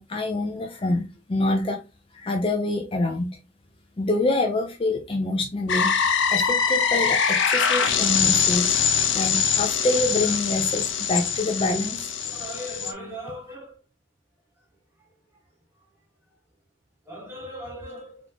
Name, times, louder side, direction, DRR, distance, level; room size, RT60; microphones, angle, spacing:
voice 1, 0.0-1.8 2.1-3.3 4.0-8.8 9.1-12.1, left 2 dB, 30° left, 0.5 m, -26 dB
sound 1, 5.7-12.9, left 7 dB, 80° left, 0.7 m, -23 dB
voice 2, 12.3-13.7 17.1-18.2, equal, 15° right, 1.5 m, -38 dB
3.7 x 3.1 x 3.4 m
head